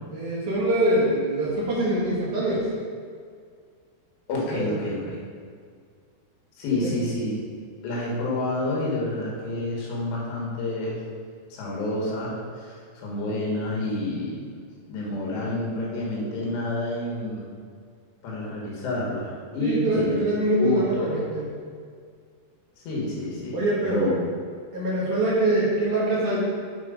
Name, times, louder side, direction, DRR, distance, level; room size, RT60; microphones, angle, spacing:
voice 1, 0.1-2.7 4.5-4.7 6.7-6.9 19.6-21.5 23.5-24.1 24.7-26.4, right 1 dB, 60° right, -7 dB, 2.6 m, -24 dB
voice 2, 4.3-5.2 6.6-7.3 7.8-11.0 11.5-14.4 14.9-17.5 18.2-20.2 20.6-21.2 22.9-23.6 23.8-24.1, left 2 dB, 90° left, -4 dB, 3.9 m, -28 dB
8.6 x 4.5 x 5.2 m, 2.1 s
omnidirectional pair, 4.8 m